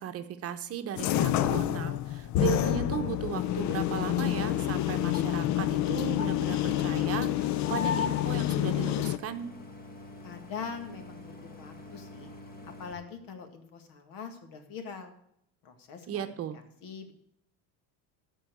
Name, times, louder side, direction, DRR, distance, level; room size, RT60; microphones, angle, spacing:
voice 1, 0.0-9.5 16.1-16.6, right 9 dB, 40° right, 8 dB, 0.9 m, -36 dB
sound 1, 1.0-9.2, left 13 dB, 50° left, 0.5 m, -28 dB
Idling, 3.3-12.9, left 2 dB, 25° left, 1.8 m, -47 dB
voice 2, 10.2-12.3 12.6-15.1 15.6-16.3 16.8-17.1, left 6 dB, 65° left, 7 dB, 2.0 m, -42 dB
13.0 x 4.6 x 7.6 m, 0.72 s
cardioid pair, 135°, 37 cm